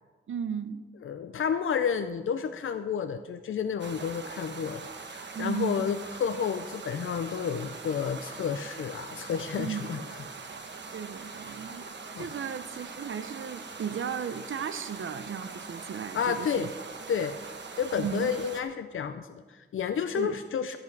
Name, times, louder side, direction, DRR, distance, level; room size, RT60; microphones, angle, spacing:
voice 1, 0.3-0.8 5.3-5.8 9.6-9.9 10.9-11.8 12.2-16.7 18.0-18.3 20.2-20.4, right 7 dB, 80° right, 11 dB, 0.6 m, -35 dB
voice 2, 1.0-10.2 12.1-12.3 16.1-16.7 17.1-17.4 17.7-20.8, left 7 dB, 85° left, 10 dB, 0.5 m, -31 dB
sound 1, 3.8-18.6, right 4 dB, 65° right, 1.1 m, -42 dB
13.5 x 7.9 x 6.0 m, 1.4 s
wide cardioid pair, 140°, 20 cm